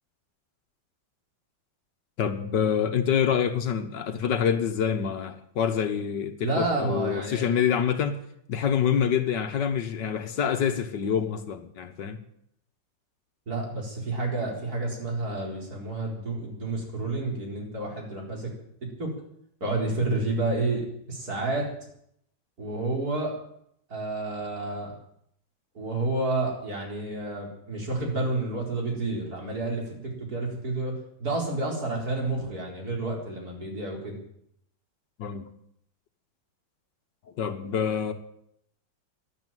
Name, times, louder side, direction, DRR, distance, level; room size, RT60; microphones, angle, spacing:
voice 1, 2.2-8.2 8.5-12.2 35.2-35.5 37.4-38.1, left 8 dB, 70° left, 1.8 m, -26 dB
voice 2, 6.4-7.5 13.5-18.5 18.8-19.1 19.6-21.7 22.6-23.3 23.9-24.9 25.7-34.2, right 2 dB, 50° right, 4.6 m, -30 dB
12.5 x 12.0 x 9.1 m
omnidirectional pair, 2.1 m